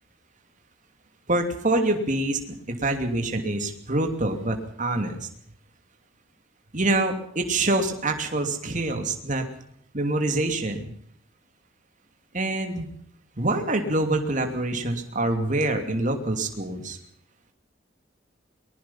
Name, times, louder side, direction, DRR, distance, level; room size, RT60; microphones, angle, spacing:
voice 1, 1.3-5.3 6.7-9.4 9.9-10.9 12.3-12.9 13.4-17.0, right 2 dB, 40° right, 5 dB, 2.9 m, -26 dB
23.0 x 21.0 x 5.7 m, 0.66 s
head